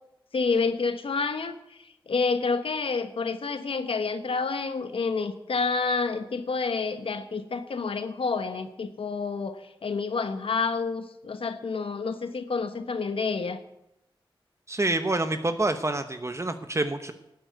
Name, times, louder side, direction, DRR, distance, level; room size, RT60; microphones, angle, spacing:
voice 1, 0.3-13.6, left 4 dB, 80° left, 9 dB, 1.2 m, -29 dB
voice 2, 14.7-17.1, right 2 dB, 30° right, 8 dB, 1.0 m, -27 dB
13.5 x 7.9 x 9.5 m, 0.87 s
cardioid pair, 60°, 9 cm